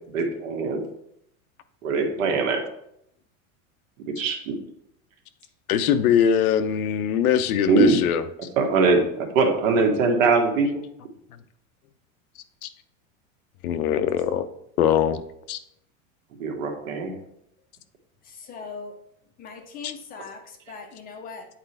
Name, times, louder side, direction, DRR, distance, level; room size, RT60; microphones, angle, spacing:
voice 1, 0.1-0.8 1.8-2.6 4.2-4.5 7.7-8.0 8.6-10.8 16.4-17.1, right 4 dB, 65° right, 3 dB, 1.6 m, -21 dB
voice 2, 5.7-8.2 12.6-12.7 13.6-14.4 14.8-15.2 15.5-15.6 19.8-19.9, left 9 dB, 90° left, 10 dB, 0.8 m, -22 dB
voice 3, 18.2-19.0 19.4-21.5, left 4 dB, 20° left, 4 dB, 0.6 m, -40 dB
8.5 x 4.5 x 3.3 m, 0.75 s
supercardioid pair, 155°, 42 cm